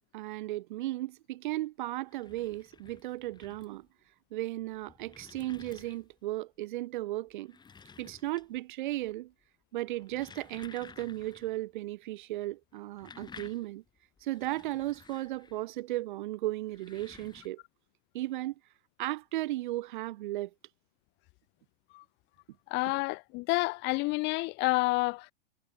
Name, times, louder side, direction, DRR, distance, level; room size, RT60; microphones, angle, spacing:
voice 1, 0.1-3.9 4.3-7.6 8.0-9.3 9.7-13.8 14.2-17.6 18.1-18.5 19.0-20.5, right 16 dB, 55° right, 1.3 m, -35 dB
sound 1, 1.9-3.9 4.6-6.3 7.3-8.7 9.0-9.5 9.9-11.6 11.9-12.0 12.7-15.8 16.6-17.5, left 5 dB, 15° left, 2.9 m, -54 dB
voice 2, 22.7-25.3, left 25 dB, 40° left, 1.3 m, -29 dB
figure-of-eight pair, 105°, 29 cm